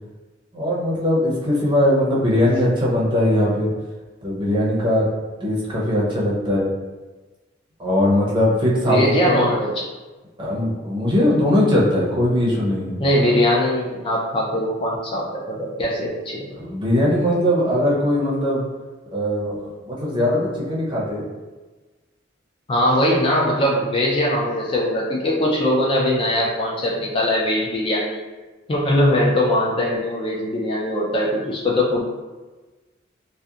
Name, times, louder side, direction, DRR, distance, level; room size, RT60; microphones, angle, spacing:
voice 1, 0.5-3.7 4.2-5.1 5.4-6.7 7.8-9.5 10.4-13.0 16.6-18.7 19.1-21.2, left 1 dB, 25° right, -6 dB, 0.6 m, -20 dB
voice 2, 8.7-9.8 13.0-16.5 22.7-28.2 28.7-32.0, left 1 dB, 30° left, -3 dB, 0.3 m, -21 dB
2.7 x 2.1 x 2.3 m, 1.2 s
head